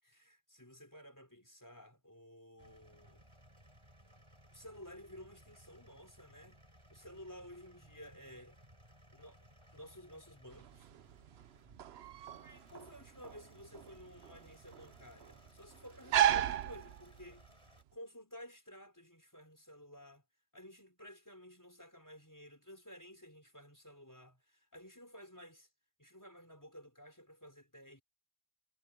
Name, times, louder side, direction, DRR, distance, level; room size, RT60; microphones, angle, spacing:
voice 1, 0.0-3.2 4.5-6.6 6.9-8.6 9.1-9.4 9.7-10.9 12.4-17.5 17.9-20.2 20.5-25.7 26.0-28.0, equal, 10° left, 4.8 m, -54 dB
sound 1, 2.6-17.8, equal, 20° right, 8.2 m, -62 dB
sound 2, 10.5-17.5, right 11 dB, 60° right, 0.7 m, -35 dB
omnidirectional pair, 1.5 m